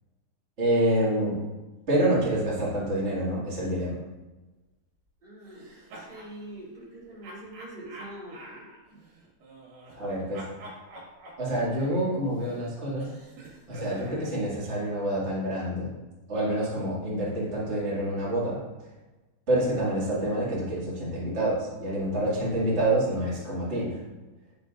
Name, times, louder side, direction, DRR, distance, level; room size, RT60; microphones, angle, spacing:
voice 1, 0.6-1.3 1.9-4.0 9.9-10.5 11.4-13.1 13.7-15.9 16.3-18.6 19.5-24.0, right 1 dB, 45° right, -7 dB, 0.8 m, -27 dB
voice 2, 5.2-9.0, right 1 dB, 20° right, -8 dB, 1.9 m, -44 dB
sound 1, 5.5-6.3 7.2-10.1 10.3-14.3, right 2 dB, 65° right, 3.2 m, -47 dB
10.0 x 6.8 x 2.5 m, 1.1 s
omnidirectional pair, 5.0 m